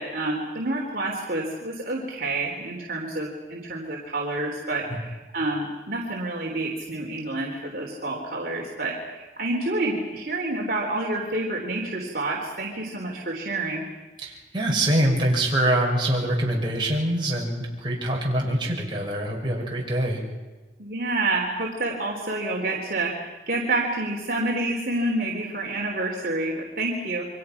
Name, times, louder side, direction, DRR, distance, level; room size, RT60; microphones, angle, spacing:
voice 1, 0.0-13.9 20.8-27.2, right 2 dB, 55° right, -2 dB, 3.7 m, -28 dB
voice 2, 14.2-20.2, right 1 dB, 25° right, -3 dB, 6.0 m, -24 dB
29.0 x 25.0 x 6.0 m, 1.2 s
head